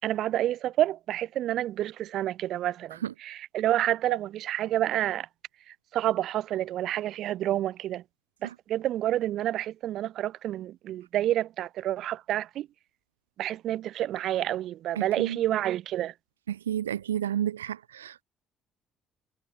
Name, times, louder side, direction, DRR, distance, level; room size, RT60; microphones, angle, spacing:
voice 1, 0.0-5.3 5.7-8.0 8.4-12.7 13.4-16.1, right 13 dB, 55° right, 5.0 m, -29 dB
voice 2, 16.5-18.2, right 10 dB, 80° right, 5.0 m, -31 dB
figure-of-eight pair, 50°, 0 cm